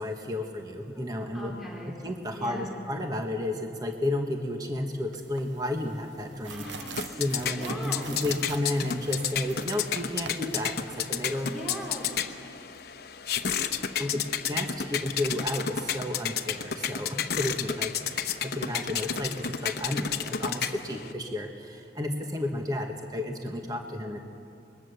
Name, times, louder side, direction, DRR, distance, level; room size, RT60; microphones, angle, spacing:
voice 1, 0.0-1.5 2.0-6.7 7.2-11.5 14.0-14.2 14.5-24.2, left 1 dB, 20° right, 3 dB, 1.3 m, -32 dB
voice 2, 1.3-1.9 2.3-2.8 6.4-7.2 7.6-8.1 11.4-12.2, equal, ahead, -3 dB, 3.9 m, -39 dB
sound 1, 5.1-12.2, right 6 dB, 75° right, 0.9 m, -45 dB
sound 2, 6.6-21.1, left 7 dB, 55° left, 0.9 m, -32 dB
23.5 x 21.5 x 6.9 m, 2.5 s
head